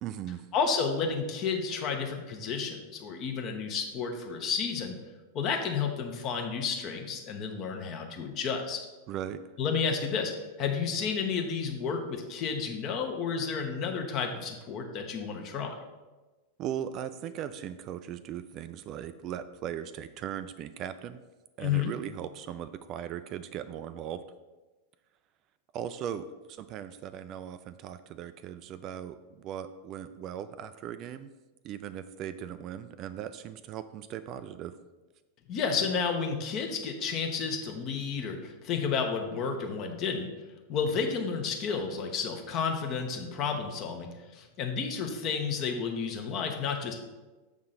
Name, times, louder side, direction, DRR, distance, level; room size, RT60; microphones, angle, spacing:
voice 1, 0.0-0.5 9.1-9.4 16.6-21.2 21.6-24.2 25.7-31.3 31.6-34.8, right 10 dB, 35° right, 12 dB, 0.3 m, -38 dB
voice 2, 0.5-5.0 5.3-8.9 9.6-10.3 10.6-15.7 21.6-21.9 35.5-40.3 40.7-47.0, left 6 dB, 35° left, 4 dB, 1.0 m, -31 dB
6.6 x 3.7 x 5.7 m, 1.2 s
figure-of-eight pair, 90°, 0 cm